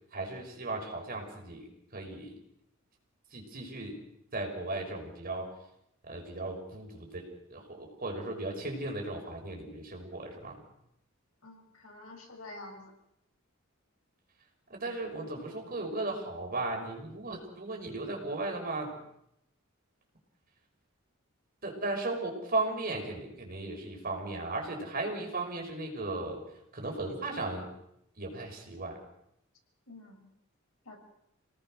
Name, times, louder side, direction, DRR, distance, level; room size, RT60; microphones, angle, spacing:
voice 1, 0.1-2.4 3.3-4.0 4.3-5.5 6.0-10.6 14.7-19.0 21.6-26.4 26.7-27.7 28.2-29.0, right 2 dB, 45° right, 1 dB, 5.9 m, -36 dB
voice 2, 11.4-12.8 29.9-30.3 30.8-31.0, left 2 dB, 85° left, 2 dB, 5.9 m, -48 dB
28.5 x 19.0 x 6.4 m, 0.79 s
head